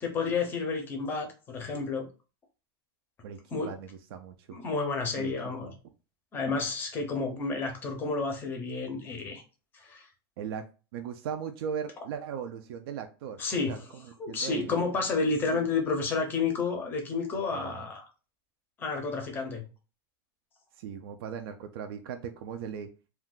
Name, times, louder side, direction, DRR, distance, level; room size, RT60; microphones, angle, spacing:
voice 1, 0.0-2.1 3.5-3.7 4.5-5.7 6.3-9.4 9.7-10.1 13.4-13.8 14.2-18.0 18.8-19.6, left 4 dB, 15° left, 4 dB, 0.6 m, -30 dB
voice 2, 3.2-4.5 5.2-5.8 10.4-10.6 10.9-13.8 14.3-14.7 15.5-15.7 17.5-17.8 20.8-22.9, right 7 dB, 65° right, 6 dB, 0.4 m, -38 dB
2.5 x 2.2 x 3.6 m, 0.33 s
supercardioid pair, 165°, 14 cm